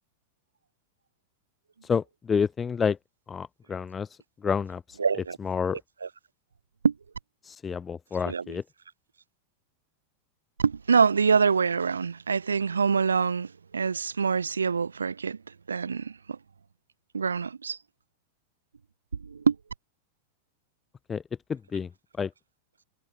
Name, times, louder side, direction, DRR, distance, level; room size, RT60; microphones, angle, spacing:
voice 1, 1.8-3.0 3.3-5.0 5.4-5.8 7.4-8.6 21.1-21.2 21.5-21.9 22.2-22.3, left 6 dB, 20° left, 2.7 m, -29 dB
voice 2, 5.0-5.4 6.0-6.1 6.8-6.9 8.3-8.6 10.6-15.4 15.7-16.4 17.1-17.8 19.2-19.6, right 5 dB, 75° right, 2.6 m, -25 dB
figure-of-eight pair, 90°, 0 cm